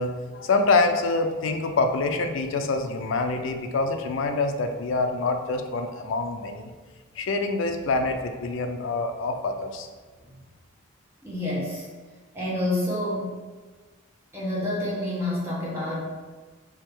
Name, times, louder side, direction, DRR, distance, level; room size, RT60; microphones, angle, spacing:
voice 1, 0.0-6.7 7.2-9.9, left 3 dB, 65° left, 6 dB, 0.4 m, -26 dB
voice 2, 11.2-11.8 12.3-13.3 14.3-16.0, left 1 dB, 10° right, -7 dB, 1.1 m, -28 dB
3.6 x 2.8 x 4.5 m, 1.4 s
head